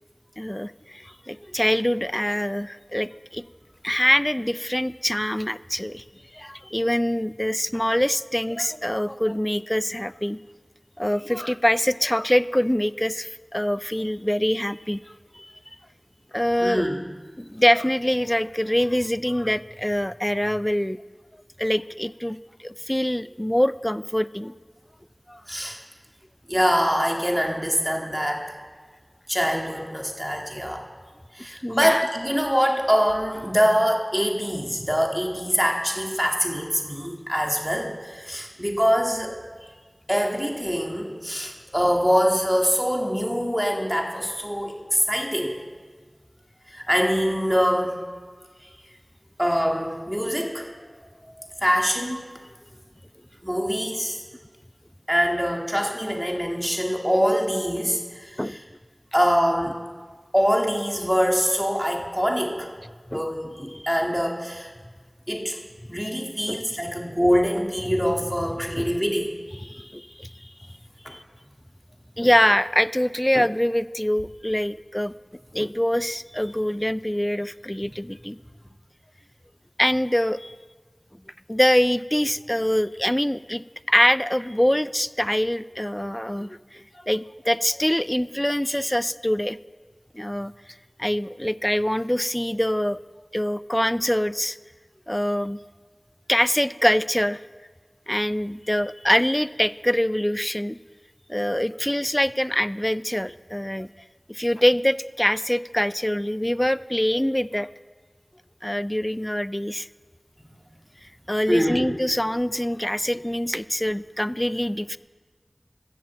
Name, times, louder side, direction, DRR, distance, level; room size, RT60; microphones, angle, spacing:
voice 1, 0.4-3.4 3.8-6.0 6.3-10.4 11.0-15.0 15.3-15.5 16.3-16.8 17.4-21.0 21.6-24.5 25.3-25.4 31.6-32.0 58.4-58.6 63.1-63.3 63.7-63.8 66.5-66.6 68.8-68.9 69.6-70.5 71.1-71.2 72.2-75.1 75.5-78.4 79.8-80.5 81.5-89.6 90.1-90.5 91.0-93.0 93.3-94.6 95.1-95.6 96.3-97.4 98.1-100.8 101.3-103.9 104.3-107.7 108.6-109.9 111.3-115.0, equal, 15° left, 17 dB, 0.4 m, -24 dB
voice 2, 16.6-17.0 25.5-25.8 26.5-28.6 29.3-30.8 31.3-39.4 40.1-45.5 46.7-48.0 49.4-50.7 51.4-52.2 53.4-54.2 55.1-58.6 59.1-59.8 60.3-62.7 63.1-64.7 65.3-65.6 65.9-69.3 111.5-111.9, equal, 5° right, 1 dB, 2.1 m, -24 dB
16.0 x 7.4 x 7.1 m, 1.5 s
wide cardioid pair, 45°, 0 cm